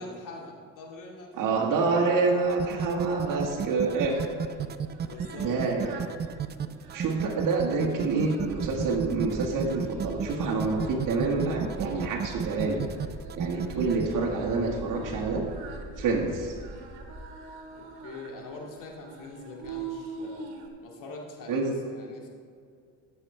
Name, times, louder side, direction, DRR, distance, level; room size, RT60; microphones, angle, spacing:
voice 1, 0.0-1.7 4.9-5.5 10.8-10.9 13.6-13.9 17.8-20.5 20.8-22.3, left 2 dB, 55° left, -1 dB, 2.4 m, -43 dB
voice 2, 1.4-4.3 5.4-6.0 6.9-12.9 13.4-15.5 16.0-16.6 21.5-21.7, right 3 dB, 55° right, -1 dB, 1.6 m, -27 dB
Singing, 1.9-20.7, right 4 dB, 70° right, 1.6 m, -45 dB
sound 1, 2.4-14.1, right 7 dB, 25° right, 0.5 m, -32 dB
sound 2, 8.4-17.3, right 1 dB, 5° right, 1.0 m, -43 dB
14.5 x 6.9 x 3.3 m, 2.2 s
supercardioid pair, 75°, 38 cm